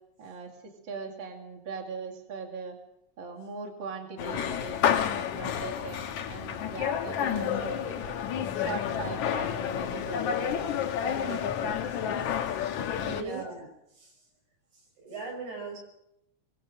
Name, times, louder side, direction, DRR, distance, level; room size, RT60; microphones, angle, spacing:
voice 1, 0.2-2.8 3.2-5.0 5.3-8.2 8.5-10.7 11.0-11.8 13.0-13.4, right 4 dB, 40° right, 3 dB, 3.0 m, -40 dB
sound 1, 4.2-13.2, left 9 dB, 85° left, 2.6 m, -30 dB
voice 2, 7.2-7.8 12.5-13.7 13.9-14.2 14.7-15.8, right 4 dB, 85° right, 2 dB, 7.4 m, -41 dB
23.5 x 22.0 x 6.4 m, 0.82 s
omnidirectional pair, 3.3 m